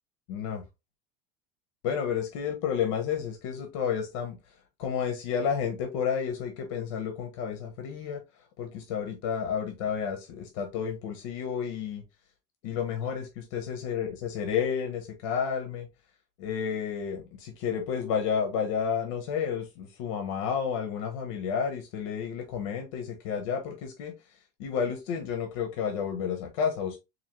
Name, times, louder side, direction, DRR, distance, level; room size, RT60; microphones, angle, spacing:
voice 1, 0.3-0.6 1.8-4.4 4.8-8.2 8.6-12.0 12.6-15.9 16.4-24.1 24.6-27.0, left 7 dB, 80° left, 5 dB, 0.9 m, -31 dB
4.2 x 2.8 x 3.0 m, 0.24 s
cardioid pair, 160°, 16 cm